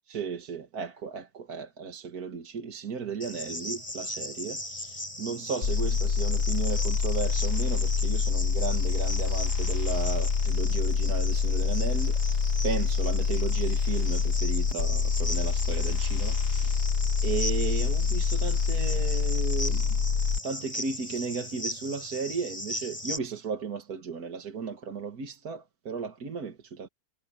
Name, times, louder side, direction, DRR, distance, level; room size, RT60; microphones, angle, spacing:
voice 1, 0.1-16.8 17.2-20.0 20.4-26.9, right 5 dB, 70° right, 2.1 m, -35 dB
Cricket, 3.2-23.2, left 1 dB, 25° left, 6.4 m, -38 dB
sound 1, 5.6-20.4, left 5 dB, 75° left, 1.9 m, -26 dB
omnidirectional pair, 1.7 m